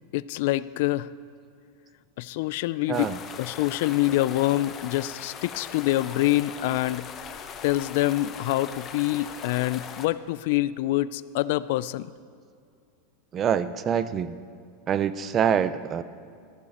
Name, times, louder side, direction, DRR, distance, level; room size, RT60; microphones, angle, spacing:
voice 1, 0.1-1.1 2.2-3.1 3.4-7.1 7.6-12.1, left 16 dB, 60° left, 17 dB, 0.3 m, -26 dB
sound 1, 2.9-10.1, left 7 dB, 25° left, 0.8 m, -40 dB
voice 2, 2.9-3.2 13.3-14.4 14.9-16.0, right 8 dB, 25° right, 14 dB, 0.4 m, -25 dB
14.5 x 14.0 x 4.2 m, 2.3 s
supercardioid pair, 150°, 0 cm